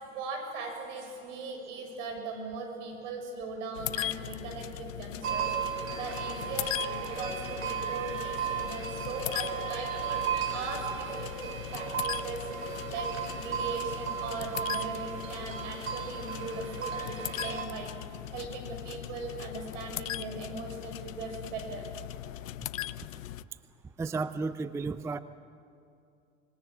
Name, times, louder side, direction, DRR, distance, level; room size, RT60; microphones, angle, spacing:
voice 1, 0.1-5.5 6.0-12.5 12.9-17.9 18.3-22.1, right 3 dB, 65° right, 4 dB, 6.6 m, -39 dB
sound 1, 3.7-23.4, left 13 dB, 80° left, 0.7 m, -39 dB
sound 2, 5.2-17.7, right 8 dB, 90° right, 3.4 m, -35 dB
voice 2, 24.0-25.2, right 4 dB, 10° right, 14 dB, 0.5 m, -33 dB
25.5 x 22.5 x 7.3 m, 2.5 s
hypercardioid pair, 90°, 39 cm